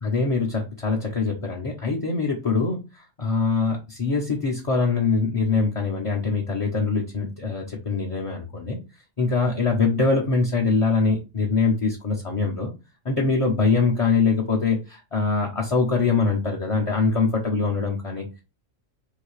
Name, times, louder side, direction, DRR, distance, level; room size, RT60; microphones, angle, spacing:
voice 1, 0.0-8.8 9.2-12.7 13.0-18.4, left 4 dB, 35° left, -2 dB, 0.5 m, -23 dB
3.8 x 2.7 x 3.1 m, 0.28 s
omnidirectional pair, 1.3 m